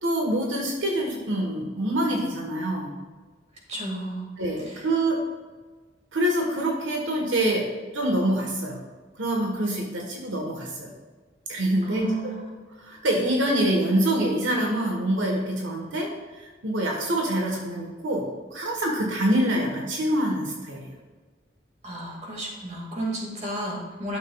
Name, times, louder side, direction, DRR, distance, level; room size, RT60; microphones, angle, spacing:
voice 1, 0.0-2.9 4.4-5.2 6.1-8.8 9.2-10.9 11.5-12.3 12.9-16.1 16.6-20.9, right 1 dB, 90° right, 0 dB, 1.4 m, -25 dB
voice 2, 3.7-4.3 4.6-4.9 11.8-12.5 21.8-24.2, right 1 dB, 35° right, -2 dB, 2.1 m, -33 dB
12.0 x 6.6 x 2.4 m, 1.4 s
head